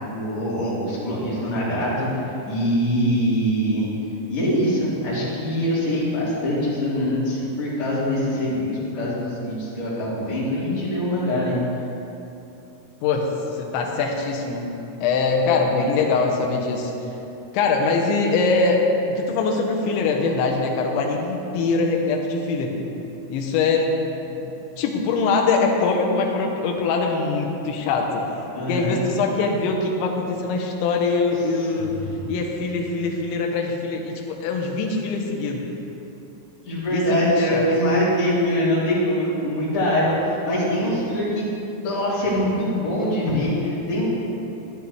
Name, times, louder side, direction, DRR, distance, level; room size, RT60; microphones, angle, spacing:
voice 1, 0.0-2.1 2.4-3.9 4.3-11.5 28.5-29.0 31.5-32.3 36.6-41.5 41.8-44.1, equal, 35° left, -9 dB, 3.4 m, -23 dB
voice 2, 13.0-13.3 13.6-14.7 15.0-16.9 17.5-22.8 23.3-23.9 24.3-28.2 28.7-31.9 32.3-35.7 36.9-37.6, left 4 dB, 80° left, 1 dB, 3.3 m, -23 dB
13.5 x 11.5 x 3.3 m, 2.9 s
omnidirectional pair, 5.4 m